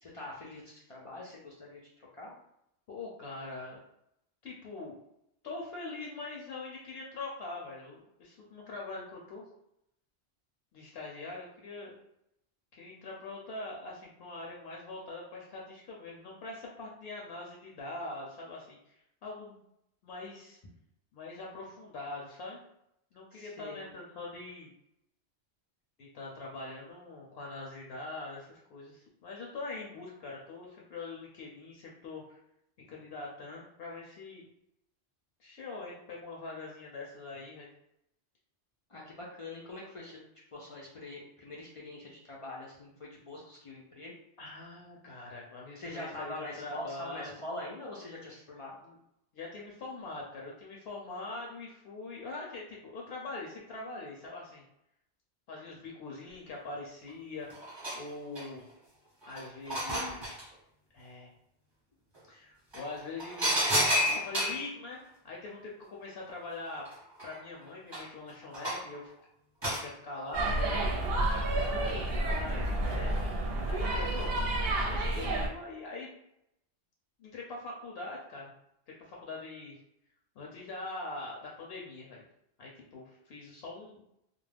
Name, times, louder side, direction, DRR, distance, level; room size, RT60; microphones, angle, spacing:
voice 1, 0.0-2.3 23.3-23.9 38.9-40.2 40.5-44.1 45.8-48.7 71.3-72.0, left 1 dB, 55° left, -5 dB, 0.3 m, -44 dB
voice 2, 2.9-3.8 4.4-5.0 5.4-9.4 10.7-11.9 12.8-19.0 19.2-19.6 20.0-20.6 21.1-22.6 23.1-24.7 26.0-32.4 32.9-34.4 35.4-37.7 44.4-47.4 48.8-49.0 49.3-54.6 55.5-57.7 57.9-58.7 59.3-60.5 60.9-61.3 62.3-66.9 67.2-69.1 69.6-70.9 71.5-73.3 73.7-74.4 74.9-76.1 77.2-78.5 79.0-79.8 80.4-82.2 82.6-84.0, left 3 dB, 70° left, -2 dB, 0.8 m, -43 dB
sound 1, 57.1-57.2 57.5-58.7 59.2-60.5 62.1-62.2 62.7-64.7 66.3-66.4 66.6-69.0 69.6-69.9 71.4-72.2 72.7-73.2 74.2-74.5 74.8-74.9, equal, 25° right, 0.8 m, -32 dB
sound 2, 70.3-75.5, right 1 dB, 70° right, 0.7 m, -30 dB
2.3 x 2.0 x 3.2 m, 0.79 s
omnidirectional pair, 1.1 m